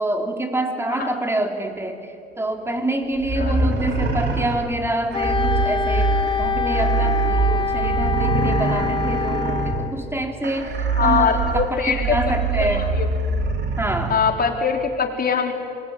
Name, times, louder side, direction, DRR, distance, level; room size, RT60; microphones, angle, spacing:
voice 1, 0.0-12.9 13.8-14.2, right 1 dB, 10° right, 4 dB, 3.6 m, -26 dB
sound 1, 3.2-14.2, right 4 dB, 60° right, 4.0 m, -24 dB
Wind instrument woodwind instrument, 5.1-9.9, left 6 dB, 25° left, 0.9 m, -25 dB
voice 2, 11.0-13.1 14.1-15.5, left 6 dB, 50° left, 2 dB, 4.1 m, -23 dB
26.0 x 21.5 x 9.9 m, 2.4 s
cardioid pair, 90°, 20 cm